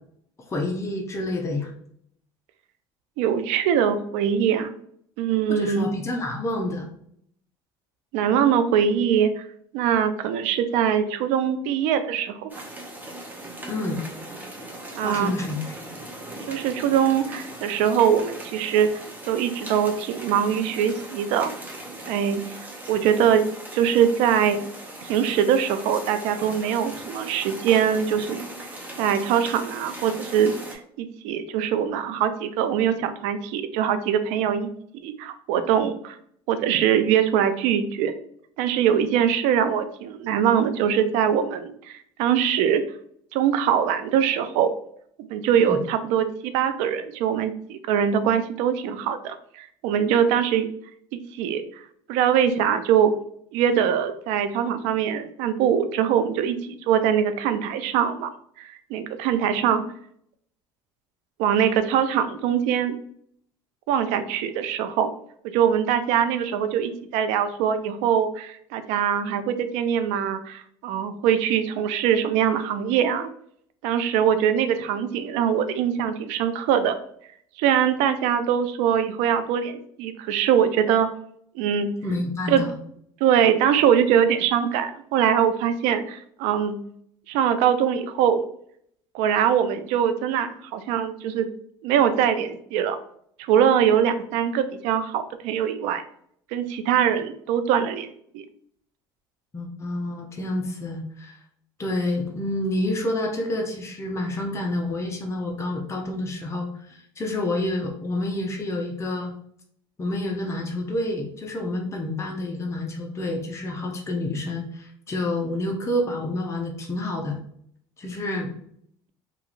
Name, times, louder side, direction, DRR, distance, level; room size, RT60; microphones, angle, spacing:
voice 1, 0.5-1.7 5.5-6.9 13.7-14.0 15.0-15.7 45.6-45.8 82.0-82.7 99.5-101.4 101.8-109.3 110.0-117.4 118.0-118.5, left 1 dB, 25° left, 1 dB, 0.6 m, -28 dB
voice 2, 3.2-4.7 5.2-5.9 8.1-9.4 9.7-12.5 14.9-15.3 16.5-18.9 19.3-21.5 22.0-22.4 22.9-23.4 23.7-24.6 25.0-28.4 29.0-34.7 35.0-36.2 36.5-38.1 38.6-42.8 43.3-44.7 45.3-50.7 51.3-51.6 52.1-53.1 53.5-58.3 58.6-59.8 61.4-63.0 63.9-65.1 65.4-73.3 73.8-76.9 77.6-81.1 81.5-81.9 82.5-82.6 83.2-86.8 87.3-88.5 89.1-91.5 91.8-93.0 93.4-96.0 96.5-98.1 98.3-98.4, right 8 dB, 70° right, 10 dB, 0.4 m, -22 dB
sound 1, 12.5-30.8, right 1 dB, 15° right, 0.8 m, -39 dB
2.9 x 2.4 x 2.5 m, 0.66 s
hypercardioid pair, 80°, 12 cm